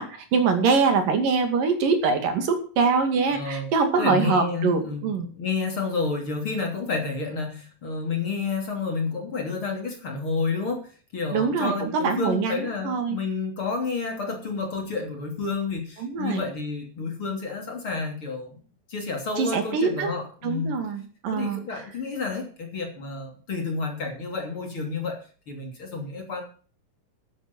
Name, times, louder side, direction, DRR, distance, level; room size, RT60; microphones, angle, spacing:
voice 1, 0.0-5.3 11.3-13.2 16.0-16.4 19.4-20.2 20.4-21.6, right 5 dB, 70° right, 6 dB, 4.0 m, -24 dB
voice 2, 3.3-3.7 4.0-18.6 18.9-20.8 21.3-26.4, left 4 dB, 40° left, 3 dB, 3.6 m, -30 dB
12.5 x 11.5 x 5.4 m, 0.39 s
omnidirectional pair, 4.0 m